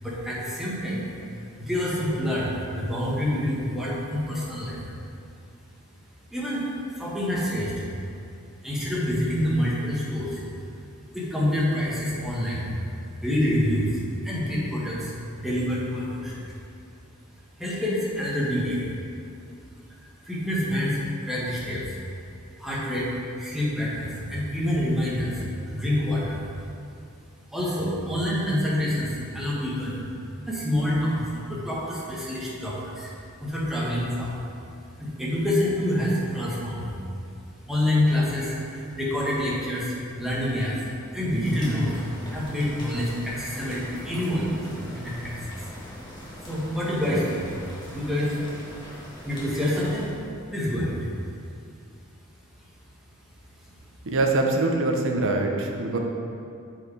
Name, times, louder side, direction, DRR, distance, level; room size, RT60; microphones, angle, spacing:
voice 1, 0.0-4.8 6.3-6.6 6.9-7.8 8.6-10.4 11.1-12.7 13.2-16.5 17.6-18.9 20.0-22.0 22.6-26.4 27.5-30.0 30.5-33.1 33.4-34.4 35.0-36.9 37.7-45.7 46.4-47.5 47.9-48.4 49.2-50.1 50.5-51.1, left 1 dB, ahead, -7 dB, 1.5 m, -27 dB
sound 1, 41.4-50.1, equal, 20° left, 1.7 m, -42 dB
voice 2, 54.1-56.0, right 2 dB, 60° right, 2 dB, 0.9 m, -23 dB
8.0 x 4.9 x 4.9 m, 2.5 s
head